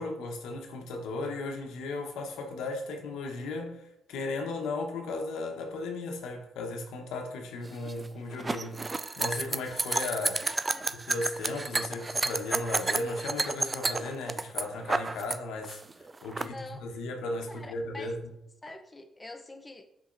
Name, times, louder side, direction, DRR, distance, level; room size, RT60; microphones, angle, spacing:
voice 1, 0.0-10.4 10.9-15.8 16.2-18.2, left 2 dB, 90° left, 1.1 m, -36 dB
sound 1, 7.6-15.4 15.6-16.4, right 3 dB, 25° right, 0.3 m, -31 dB
voice 2, 10.4-10.9 16.4-17.0 17.5-18.2 18.6-19.9, left 2 dB, 15° left, 0.7 m, -45 dB
8.4 x 5.7 x 2.6 m
cardioid pair, 90°, 0 cm